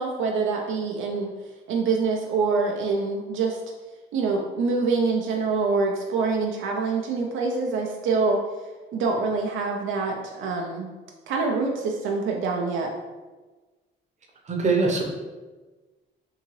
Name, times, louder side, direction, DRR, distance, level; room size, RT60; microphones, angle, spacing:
voice 1, 0.0-1.3 1.7-3.6 4.1-8.4 8.9-10.9 11.3-12.9, right 4 dB, 80° right, 1 dB, 0.5 m, -25 dB
voice 2, 14.5-15.0, right 3 dB, 35° right, 0 dB, 0.8 m, -22 dB
3.7 x 2.6 x 3.1 m, 1.3 s
cardioid pair, 90°, 20 cm